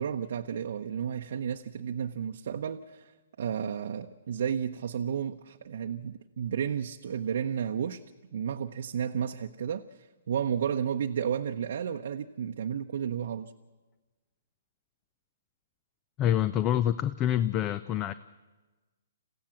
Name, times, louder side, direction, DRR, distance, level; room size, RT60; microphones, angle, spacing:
voice 1, 0.0-3.1 3.4-8.0 8.3-13.5, right 8 dB, 65° right, 4 dB, 0.8 m, -32 dB
voice 2, 16.2-18.1, left 11 dB, 25° left, 15 dB, 0.6 m, -26 dB
27.5 x 15.5 x 7.3 m, 1.2 s
hypercardioid pair, 135°, 0 cm